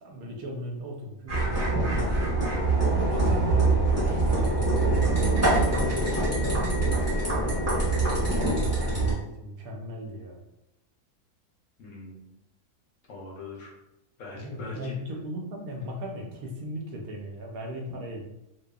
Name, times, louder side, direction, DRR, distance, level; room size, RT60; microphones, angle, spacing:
voice 1, 0.0-10.4 14.3-18.2, equal, 75° right, 0 dB, 1.0 m, -38 dB
sound 1, 1.3-9.1, right 2 dB, 15° right, 0.7 m, -24 dB
voice 2, 11.8-12.3 13.1-13.7 14.2-15.0 17.9-18.0, left 2 dB, 65° left, -2 dB, 0.9 m, -42 dB
2.7 x 2.3 x 2.2 m, 0.86 s
omnidirectional pair, 1.6 m